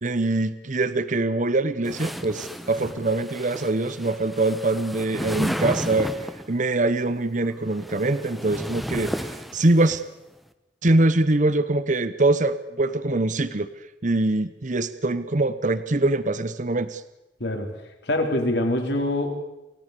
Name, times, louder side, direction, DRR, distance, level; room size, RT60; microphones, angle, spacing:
voice 1, 0.0-6.1 6.5-10.0 10.8-13.7 14.0-17.0, right 2 dB, 40° right, 14 dB, 0.9 m, -23 dB
sound 1, 1.8-6.5 7.5-10.0, equal, ahead, 1.1 m, -33 dB
voice 2, 18.0-19.4, left 1 dB, 60° left, 3 dB, 4.1 m, -24 dB
28.5 x 17.0 x 6.8 m, 0.98 s
head